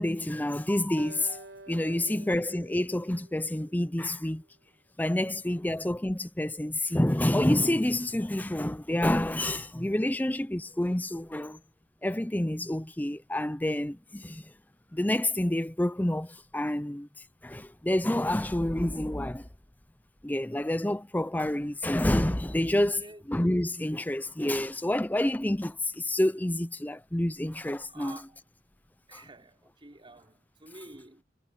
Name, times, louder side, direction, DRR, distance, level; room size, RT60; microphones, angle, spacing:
voice 1, 0.0-4.4 5.0-11.6 12.0-14.4 14.9-17.1 17.4-19.5 20.2-23.0 23.3-28.2, left 1 dB, 10° left, 0.6 m, -28 dB
Acoustic guitar, 1.0-4.3, right 2 dB, 85° right, 3.8 m, -50 dB
voice 2, 1.9-2.3 5.2-5.4 22.9-23.3 27.9-28.4 29.1-31.2, right 2 dB, 30° right, 3.9 m, -50 dB
head